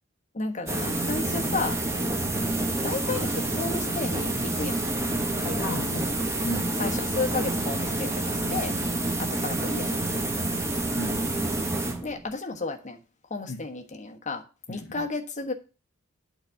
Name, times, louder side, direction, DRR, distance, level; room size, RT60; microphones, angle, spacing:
voice 1, 0.3-1.8 2.8-4.8 5.4-5.8 6.8-8.1 8.5-8.7 9.2-10.5 12.0-13.0 13.3-14.4 14.7-15.5, left 3 dB, 35° left, 4 dB, 1.3 m, -33 dB
sound 1, 0.7-12.3, right 2 dB, 15° right, 1.2 m, -28 dB
voice 2, 5.6-6.1 6.4-6.8 8.4-8.7 11.0-11.4 13.5-13.6 14.7-15.1, left 2 dB, 60° left, 4 dB, 0.9 m, -36 dB
8.8 x 4.1 x 7.0 m, 0.32 s
head